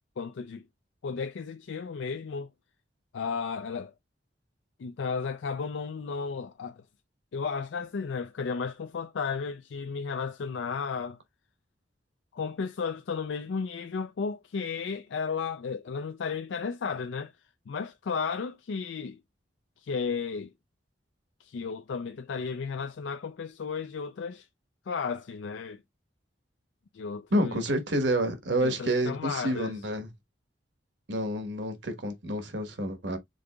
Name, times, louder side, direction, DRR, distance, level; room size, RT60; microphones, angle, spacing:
voice 1, 0.2-0.7 1.0-2.5 3.1-3.9 4.8-6.8 7.3-11.2 12.3-17.3 17.7-19.2 19.8-20.5 21.4-24.5 24.9-25.8 26.9-27.6 28.6-29.8, left 5 dB, 80° left, 0.4 m, -34 dB
voice 2, 27.3-30.1 31.1-33.2, right 1 dB, 70° right, 1.2 m, -29 dB
5.3 x 3.8 x 2.2 m
head